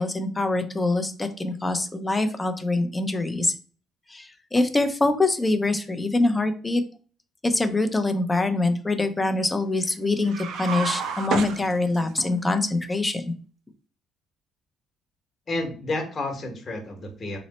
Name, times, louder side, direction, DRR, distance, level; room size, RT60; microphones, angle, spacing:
voice 1, 0.0-3.5 4.1-6.8 7.4-13.3, left 2 dB, 15° left, 7 dB, 0.5 m, -24 dB
sound 1, 10.2-12.3, right 5 dB, 70° right, 0.4 m, -30 dB
voice 2, 15.5-17.4, left 2 dB, 40° left, 2 dB, 1.1 m, -30 dB
3.0 x 2.0 x 4.1 m, 0.40 s
cardioid pair, 95°, 0 cm